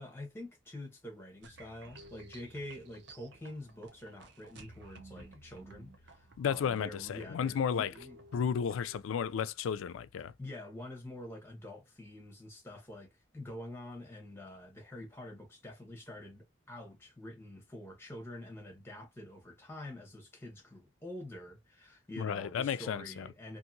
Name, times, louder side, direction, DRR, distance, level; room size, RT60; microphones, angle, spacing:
voice 1, 0.0-8.2 10.4-23.6, left 1 dB, 10° left, 0.9 m, -47 dB
sound 1, 1.4-9.0, right 2 dB, 60° right, 0.6 m, -55 dB
voice 2, 6.4-7.9 8.3-10.3 22.2-23.2, left 7 dB, 90° left, 0.3 m, -33 dB
2.8 x 2.6 x 2.5 m
head